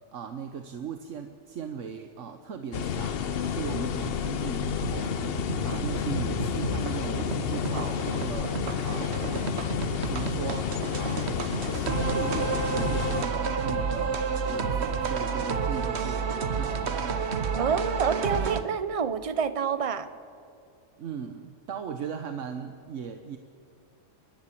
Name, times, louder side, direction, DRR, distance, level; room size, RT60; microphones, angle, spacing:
voice 1, 0.1-8.5 8.8-9.3 10.1-17.1 21.0-23.4, right 7 dB, 75° right, 7 dB, 1.3 m, -38 dB
sound 1, 2.7-13.2, left 8 dB, 55° left, 0.8 m, -30 dB
sound 2, 4.6-18.6, right 5 dB, 60° right, 1.3 m, -31 dB
voice 2, 17.6-20.1, right 6 dB, 30° right, 12 dB, 0.8 m, -28 dB
30.0 x 11.5 x 8.4 m, 2.5 s
omnidirectional pair, 1.3 m